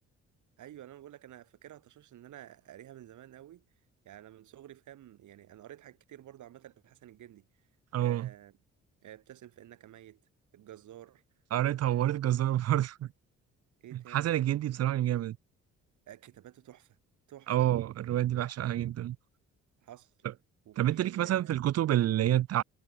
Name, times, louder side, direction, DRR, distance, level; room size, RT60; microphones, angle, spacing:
voice 1, 0.6-3.6 4.0-7.5 8.0-8.6 9.0-10.2 10.5-11.2 11.8-12.2 13.8-14.4 16.1-17.0 17.3-17.7 19.8-20.1 20.7-21.6, right 12 dB, 75° right, 5.6 m, -51 dB
voice 2, 7.9-8.3 11.5-13.1 13.9-15.4 17.5-19.2 20.8-22.6, right 12 dB, 55° right, 0.6 m, -28 dB
cardioid pair, 90°, 30 cm